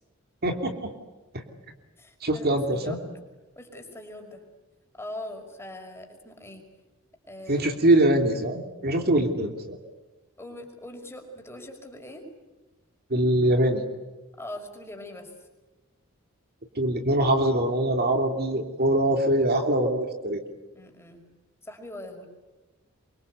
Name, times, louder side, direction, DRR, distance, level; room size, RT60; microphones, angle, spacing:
voice 1, 0.4-0.9 2.2-3.0 7.5-9.8 13.1-13.8 16.8-20.4, right 1 dB, 50° right, 5 dB, 3.0 m, -23 dB
voice 2, 2.0-3.0 3.6-4.4 5.0-6.7 7.3-7.7 10.4-12.3 14.4-15.5 20.7-21.3 21.6-22.3, left 1 dB, 10° left, 3 dB, 5.4 m, -41 dB
27.5 x 24.0 x 8.2 m, 1.1 s
head